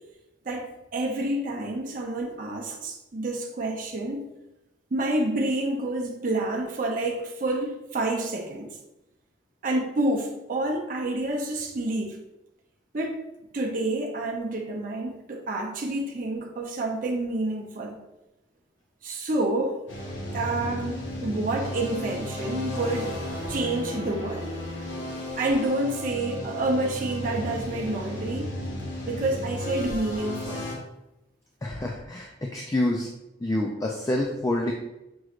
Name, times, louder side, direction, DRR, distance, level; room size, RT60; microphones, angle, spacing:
voice 1, 0.5-4.2 4.9-8.7 9.6-12.2 12.9-13.2 13.5-18.0 19.0-19.8 20.3-23.2 23.5-24.6 25.4-28.5 29.1-30.7, right 2 dB, 45° right, 0 dB, 0.5 m, -28 dB
sound 1, 19.9-30.7, left 1 dB, 80° left, 1.1 m, -34 dB
voice 2, 31.6-33.1 33.4-34.7, left 1 dB, 20° left, 0 dB, 0.3 m, -27 dB
6.1 x 3.0 x 2.4 m, 0.93 s
head